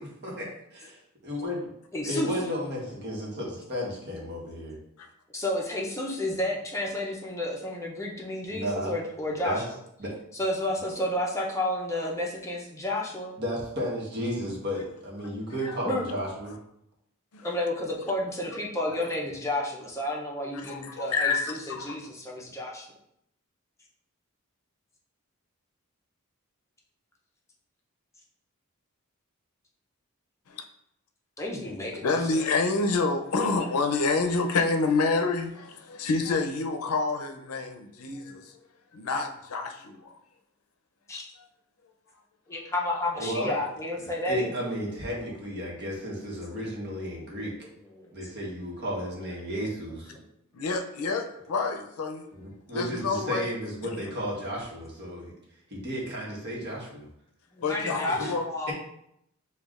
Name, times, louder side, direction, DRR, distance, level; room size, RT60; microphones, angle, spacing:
voice 1, 0.0-1.7 2.0-4.8 8.5-8.9 9.4-9.6 10.0-10.1 13.4-16.6 43.2-43.6 44.0-47.5 48.1-50.1 52.3-55.3 55.7-57.1 58.1-58.3 58.7-58.8, equal, 50° right, -3 dB, 1.1 m, -33 dB
voice 2, 1.9-2.4 5.3-9.8 10.3-13.3 15.8-16.1 17.4-22.9 31.4-32.4 41.1-41.3 42.5-44.7 47.2-48.1 49.6-49.7 50.1-50.2 57.5-58.7, left 1 dB, 15° left, -2 dB, 0.6 m, -31 dB
voice 3, 20.5-22.0 30.5-30.6 32.0-38.5 38.9-40.1 50.5-52.2 52.7-53.5 57.6-58.5, left 3 dB, 85° left, 5 dB, 0.5 m, -28 dB
6.8 x 2.3 x 2.4 m, 0.75 s
head